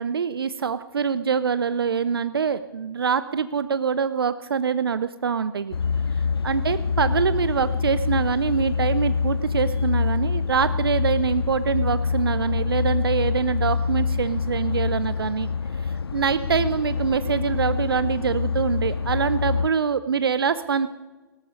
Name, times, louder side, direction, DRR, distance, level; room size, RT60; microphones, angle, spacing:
voice 1, 0.0-5.8 6.4-20.9, right 6 dB, 70° right, 14 dB, 0.6 m, -24 dB
sound 1, 5.7-19.7, left 5 dB, 80° left, 0.5 m, -26 dB
18.0 x 13.0 x 5.4 m, 1.3 s
figure-of-eight pair, 115°, 13 cm